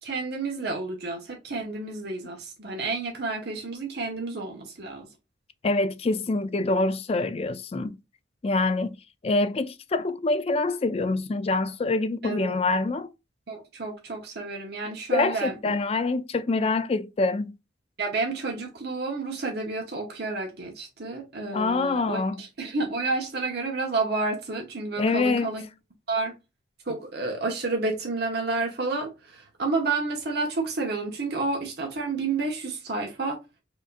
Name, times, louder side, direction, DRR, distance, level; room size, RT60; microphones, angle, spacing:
voice 1, 0.0-5.1 12.2-12.8 13.5-15.8 18.0-25.6 26.1-26.3 26.9-33.4, right 3 dB, 60° right, 1.0 m, -30 dB
voice 2, 5.6-8.0 8.4-9.0 9.2-13.1 15.1-17.5 21.5-22.4 25.0-25.5, left 3 dB, 30° left, 0.4 m, -25 dB
4.9 x 2.6 x 2.4 m
head